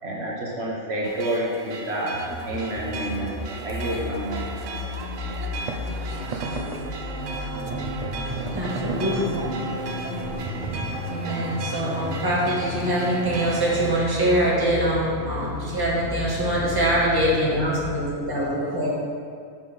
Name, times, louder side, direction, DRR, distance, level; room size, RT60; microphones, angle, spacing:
voice 1, 0.0-2.2 2.5-4.5, right 1 dB, 60° right, -4 dB, 1.4 m, -29 dB
sound 1, 1.0-14.0, right 4 dB, 90° right, 1.0 m, -35 dB
sound 2, 2.1-18.1, left 3 dB, 60° left, 1.0 m, -34 dB
sound 3, 5.7-5.8 6.3-6.8 7.3-9.4 9.7-9.9 10.2-11.0, right 4 dB, 45° right, 0.5 m, -33 dB
voice 2, 6.0-6.8 18.4-18.9, left 1 dB, 20° left, -12 dB, 2.0 m, -41 dB
voice 3, 8.5-10.8 11.1-18.9, right 1 dB, 20° right, -7 dB, 1.7 m, -24 dB
6.7 x 5.7 x 5.4 m, 2.2 s
omnidirectional pair, 1.2 m